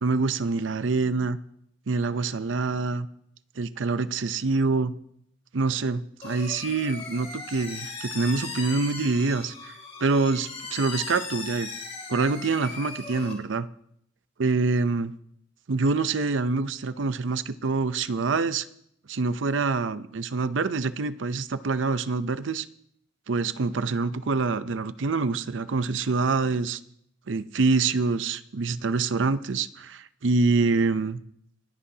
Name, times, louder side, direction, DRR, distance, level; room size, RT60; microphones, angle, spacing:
voice 1, 0.0-1.4 1.9-3.1 3.6-4.9 5.5-9.7 10.0-11.7 12.1-13.7 14.4-15.1 15.7-18.7 19.1-22.7 23.3-26.8 27.3-31.2, right 4 dB, 90° right, 14 dB, 0.6 m, -26 dB
sound 1, 6.2-13.3, left 4 dB, 35° left, 2.6 m, -38 dB
27.0 x 9.9 x 2.8 m, 0.73 s
head